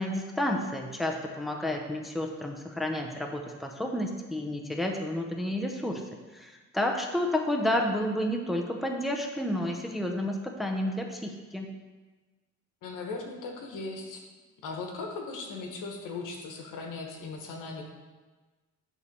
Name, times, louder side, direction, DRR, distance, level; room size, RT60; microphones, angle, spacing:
voice 1, 0.0-6.0 6.3-11.7, left 1 dB, ahead, 3 dB, 0.6 m, -30 dB
voice 2, 12.8-14.2 14.6-17.8, left 3 dB, 90° left, 2 dB, 1.3 m, -38 dB
9.9 x 3.3 x 5.3 m, 1.3 s
cardioid pair, 140°, 31 cm